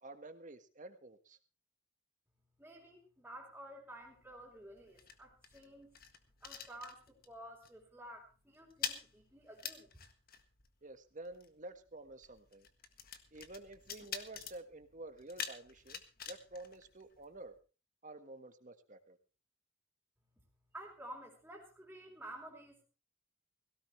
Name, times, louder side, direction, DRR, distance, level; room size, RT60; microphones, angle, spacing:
voice 1, 0.0-1.4 10.8-12.7 13.3-16.0 16.3-17.5 18.0-19.2, right 2 dB, 40° right, 9 dB, 1.6 m, -50 dB
voice 2, 2.6-5.9 6.4-9.9 20.7-22.8, right 1 dB, 5° right, -6 dB, 4.0 m, -52 dB
sound 1, 4.0-7.4 7.6-7.9 8.2-17.6, left 7 dB, 50° left, 1.6 m, -47 dB
17.5 x 17.0 x 3.3 m, 0.32 s
head